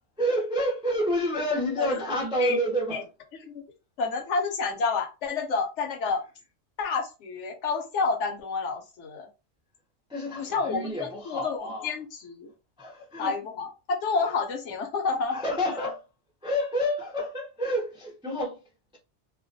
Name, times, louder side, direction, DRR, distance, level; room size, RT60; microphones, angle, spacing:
voice 1, 0.2-3.0 10.1-11.9 12.8-13.3 15.3-16.0 16.4-18.6, equal, 10° right, 0.3 m, -29 dB
voice 2, 3.3-3.6 4.0-6.2 6.8-9.3 10.4-12.5 13.2-15.4, left 4 dB, 75° left, 0.9 m, -29 dB
2.3 x 2.2 x 2.5 m
omnidirectional pair, 1.3 m